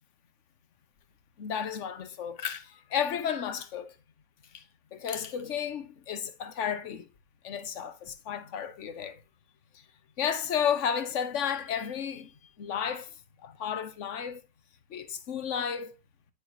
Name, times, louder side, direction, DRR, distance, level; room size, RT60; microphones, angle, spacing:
voice 1, 1.4-3.9 4.5-4.6 4.9-7.1 7.4-9.2 10.2-12.3 12.6-13.1 13.4-14.4 14.9-16.0, left 8 dB, 60° left, 1.2 m, -32 dB
9.5 x 6.9 x 2.8 m
omnidirectional pair, 1.5 m